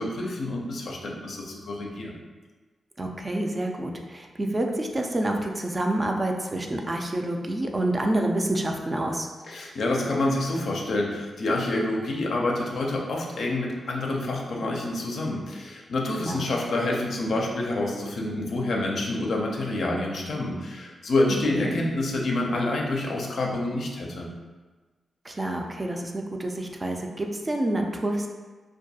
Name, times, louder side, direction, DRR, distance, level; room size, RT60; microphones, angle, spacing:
voice 1, 0.0-2.1 9.5-24.3, left 2 dB, 70° left, -1 dB, 0.4 m, -27 dB
voice 2, 3.0-9.3 16.2-16.5 21.5-21.7 25.2-28.3, right 1 dB, 30° right, 2 dB, 0.3 m, -28 dB
2.3 x 2.2 x 2.7 m, 1.3 s
cardioid pair, 55°, 0 cm